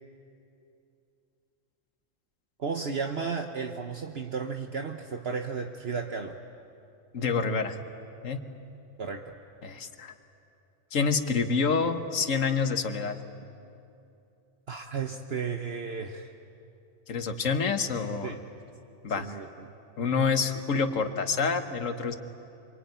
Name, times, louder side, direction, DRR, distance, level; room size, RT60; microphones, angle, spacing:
voice 1, 2.6-6.4 9.0-9.4 14.7-16.3 18.2-18.4 19.1-19.5, right 5 dB, 55° right, 4 dB, 1.2 m, -33 dB
voice 2, 7.1-7.8 8.2-8.4 9.6-10.1 10.9-13.2 17.1-18.3 19.0-19.3 20.0-22.2, left 5 dB, 85° left, 8 dB, 1.7 m, -27 dB
26.0 x 24.5 x 9.3 m, 2.7 s
omnidirectional pair, 1.3 m